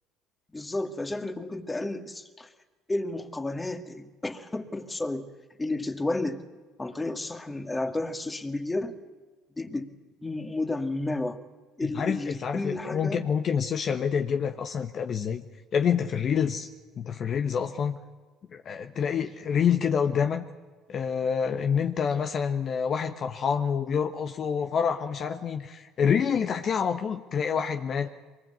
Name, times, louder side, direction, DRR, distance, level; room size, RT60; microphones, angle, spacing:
voice 1, 0.5-2.5 2.9-5.3 5.6-6.4 6.8-8.9 9.6-9.9 10.2-11.4 11.8-13.3, left 2 dB, 15° left, 8 dB, 2.1 m, -32 dB
voice 2, 11.8-15.4 15.7-16.7 16.9-18.0 18.5-20.4 20.9-28.1, left 7 dB, 50° left, 7 dB, 1.2 m, -27 dB
23.5 x 20.0 x 8.1 m, 1.4 s
hypercardioid pair, 70°, 0 cm